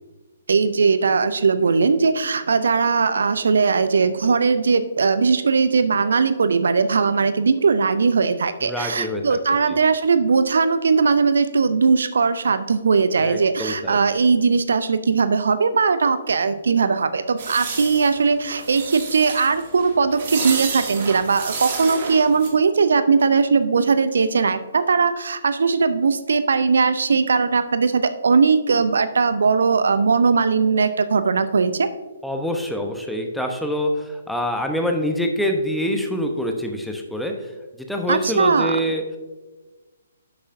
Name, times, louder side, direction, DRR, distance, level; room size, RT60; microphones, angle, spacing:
voice 1, 0.5-31.9 38.1-38.8, right 5 dB, 65° right, 12 dB, 0.5 m, -19 dB
voice 2, 8.6-9.4 9.7-9.8 13.2-14.0 32.2-37.5 37.8-39.2, equal, ahead, 3 dB, 0.9 m, -25 dB
sound 1, 17.4-22.5, right 5 dB, 45° right, 1.9 m, -30 dB
11.0 x 8.3 x 2.6 m, 1.2 s
figure-of-eight pair, 130°, 0 cm